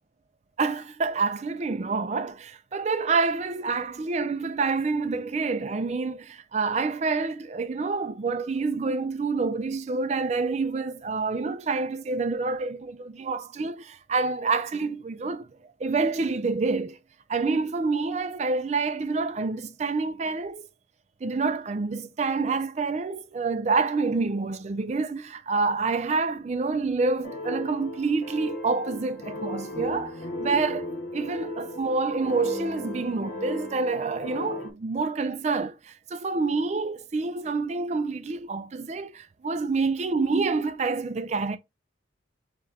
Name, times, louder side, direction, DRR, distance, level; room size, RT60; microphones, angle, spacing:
voice 1, 0.6-15.5 15.8-17.0 17.3-20.6 21.2-41.6, right 4 dB, 35° right, 0.3 m, -27 dB
sound 1, 27.2-34.7, left 1 dB, 50° left, 0.9 m, -36 dB
6.5 x 2.3 x 2.8 m
head